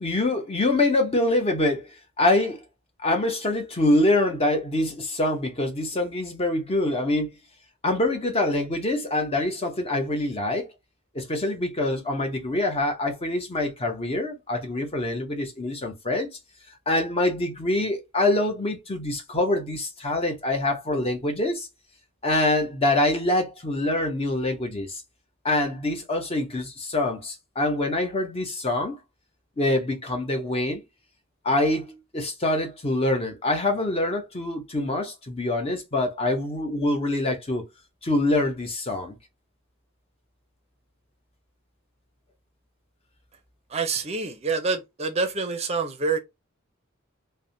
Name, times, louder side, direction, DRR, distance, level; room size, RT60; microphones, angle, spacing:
voice 1, 0.0-1.8 2.2-2.6 3.0-7.4 7.8-10.7 11.1-16.3 16.9-21.7 22.2-25.0 25.4-29.0 29.6-30.8 31.4-37.6 38.0-39.1, left 2 dB, 30° left, 0.7 m, -25 dB
voice 2, 43.7-46.2, right 4 dB, 30° right, 0.5 m, -27 dB
3.3 x 2.1 x 2.6 m
head